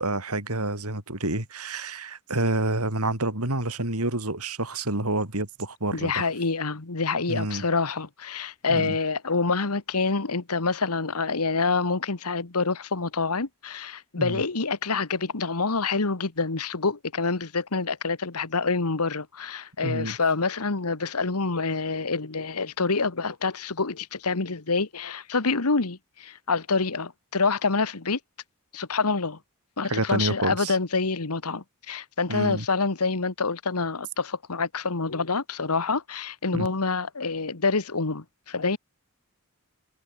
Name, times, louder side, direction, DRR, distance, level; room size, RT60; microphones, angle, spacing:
voice 1, 0.0-6.3 7.3-7.6 8.7-9.0 14.2-14.4 19.8-20.2 29.9-30.8 32.3-32.6 36.5-36.7, right 2 dB, 80° right, 6.0 m, -28 dB
voice 2, 5.9-28.2 28.7-29.4 29.8-38.8, left 4 dB, 85° left, 1.5 m, -27 dB
head